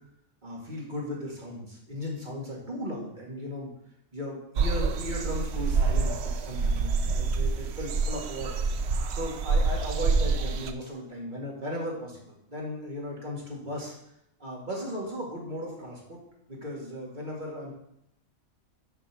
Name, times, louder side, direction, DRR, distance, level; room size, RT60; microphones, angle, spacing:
voice 1, 0.4-3.7 4.1-8.5 9.1-14.0 14.4-16.2 16.5-17.7, equal, 35° right, -3 dB, 2.2 m, -36 dB
sound 1, 4.6-10.7, right 4 dB, 60° right, 0.7 m, -27 dB
6.9 x 5.4 x 6.0 m, 0.79 s
omnidirectional pair, 1.5 m